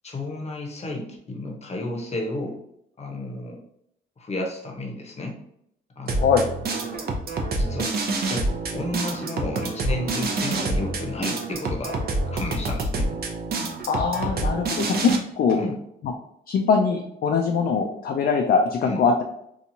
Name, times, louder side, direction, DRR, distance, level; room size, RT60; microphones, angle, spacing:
voice 1, 0.0-2.6 3.0-3.6 4.2-5.4 6.0-6.3 7.5-7.9 8.3-8.5 8.7-12.0 12.3-13.1 15.5-15.8 18.9-19.0, left 1 dB, 35° left, 1 dB, 0.8 m, -32 dB
sound 1, 6.1-15.2, right 2 dB, 50° right, 0.6 m, -27 dB
voice 2, 13.9-15.6 16.5-19.2, left 5 dB, 50° left, 3 dB, 0.4 m, -22 dB
2.9 x 2.3 x 2.6 m, 0.73 s
cardioid pair, 90°, 20 cm